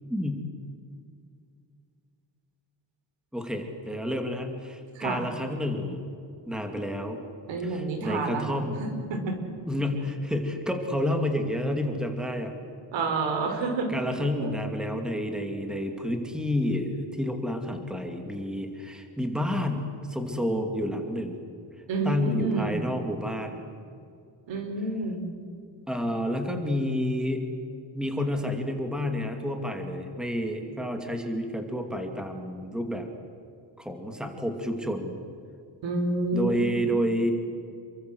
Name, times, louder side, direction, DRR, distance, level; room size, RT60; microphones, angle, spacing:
voice 1, 0.1-0.4 3.3-6.0 6.5-7.2 7.6-8.8 9.7-12.5 13.9-21.4 22.0-23.6 25.9-27.5 27.9-33.1 33.8-35.2 36.3-37.3, left 1 dB, ahead, 4 dB, 2.4 m, -30 dB
voice 2, 4.9-5.3 7.5-9.4 12.9-13.9 14.4-14.5 21.9-22.8 24.5-25.3 35.8-36.6, right 3 dB, 85° right, 5 dB, 4.9 m, -29 dB
28.5 x 23.5 x 7.9 m, 2.4 s
cardioid pair, 175°, 44 cm